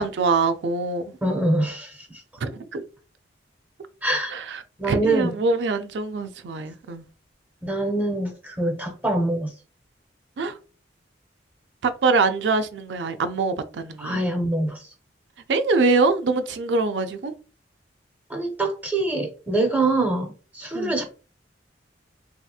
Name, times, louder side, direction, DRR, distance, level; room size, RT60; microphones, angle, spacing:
voice 1, 0.0-1.0 2.4-2.8 4.3-4.6 4.9-7.0 10.4-10.6 11.8-14.2 15.5-17.3 20.7-20.9, right 3 dB, 70° right, 0.4 m, -24 dB
voice 2, 1.2-2.2 4.0-4.3 4.8-5.4 7.6-9.5 14.0-14.9 18.3-21.0, right 2 dB, 10° right, 0.6 m, -24 dB
3.2 x 2.8 x 2.3 m
head